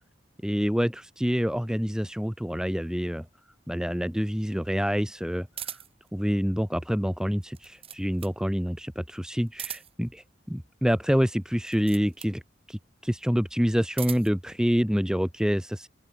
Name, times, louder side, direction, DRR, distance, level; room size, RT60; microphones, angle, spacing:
voice 1, 0.4-3.2 3.7-5.8 6.1-12.4 12.7-15.9, equal, 5° right, 1.7 m, -27 dB
sound 1, 5.5-6.1 7.4-8.4 9.5-10.1 11.6-12.4 13.6-14.4, right 9 dB, 30° right, 2.1 m, -40 dB
open air
head